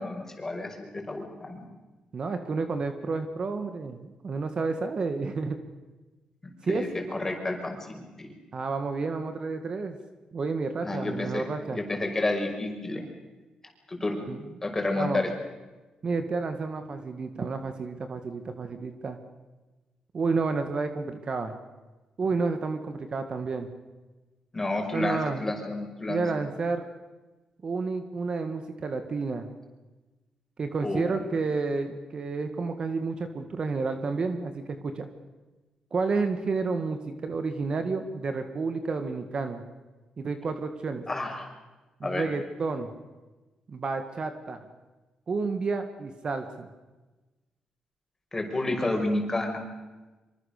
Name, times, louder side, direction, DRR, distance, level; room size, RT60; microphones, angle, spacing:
voice 1, 0.0-1.6 6.7-8.3 10.8-13.1 13.9-14.3 14.6-15.3 24.5-26.2 30.8-31.1 41.1-41.5 42.0-42.3 48.3-49.6, left 2 dB, 20° left, 3 dB, 5.7 m, -30 dB
voice 2, 2.1-5.6 6.6-6.8 8.5-10.0 10.3-11.8 14.3-14.5 14.9-15.3 16.0-19.2 20.1-21.6 22.2-23.7 24.9-25.5 26.1-26.9 27.6-29.5 30.6-35.1 35.9-39.6 40.2-41.0 42.0-42.9 43.7-44.6 45.3-46.7, right 4 dB, 45° right, 7 dB, 2.0 m, -30 dB
25.0 x 24.0 x 6.8 m, 1.2 s
cardioid pair, 105°, 2 cm